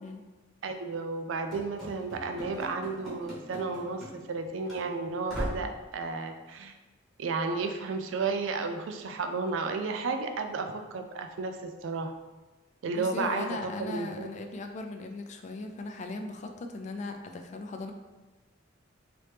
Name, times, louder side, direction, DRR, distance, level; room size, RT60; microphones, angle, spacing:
voice 1, 0.6-6.7 7.2-12.1 12.8-14.3, right 4 dB, 80° right, 6 dB, 0.4 m, -33 dB
Run / Slam, 1.5-4.4 4.7-4.8 5.3-5.8, equal, ahead, 1.0 m, -39 dB
voice 2, 12.9-17.9, left 3 dB, 40° left, 5 dB, 0.3 m, -38 dB
3.0 x 2.8 x 3.3 m, 1.2 s
head